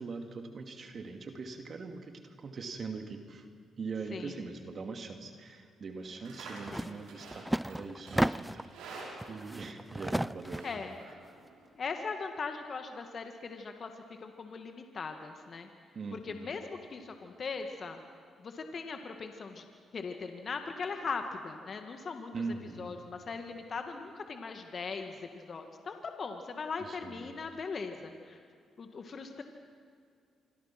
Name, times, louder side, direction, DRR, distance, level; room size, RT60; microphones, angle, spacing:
voice 1, 0.0-3.5 3.8-10.7 15.9-16.5 22.3-23.0 26.8-27.3, right 4 dB, 55° right, 5 dB, 2.4 m, -42 dB
voice 2, 4.1-4.4 6.7-7.0 10.6-11.0 11.7-15.7 16.1-18.0 18.4-19.6 19.9-22.3 22.8-28.4 28.8-29.4, left 4 dB, 50° left, 5 dB, 2.0 m, -40 dB
Livestock farm animals working animals, 6.0-11.7, right 3 dB, 90° right, 6.4 m, -50 dB
sound 1, 6.7-6.9 7.2-8.7 9.2-10.8, right 1 dB, 5° right, 0.5 m, -33 dB
26.5 x 24.0 x 6.1 m, 2.2 s
supercardioid pair, 60°, 0 cm